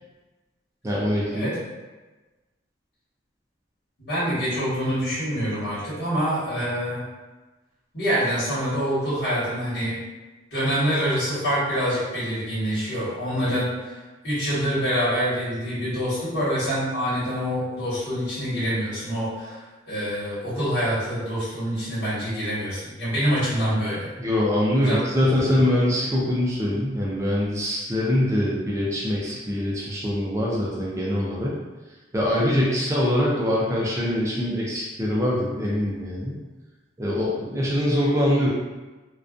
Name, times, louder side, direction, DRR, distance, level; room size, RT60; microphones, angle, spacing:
voice 1, 0.8-1.5 24.2-31.5 32.1-36.4 37.0-38.5, left 1 dB, 15° right, -5 dB, 0.4 m, -23 dB
voice 2, 4.0-7.0 7.9-9.9 10.5-13.9 14.2-19.6 19.9-24.1 24.8-25.3, equal, 65° left, -10 dB, 1.3 m, -26 dB
2.5 x 2.2 x 2.4 m, 1.2 s
head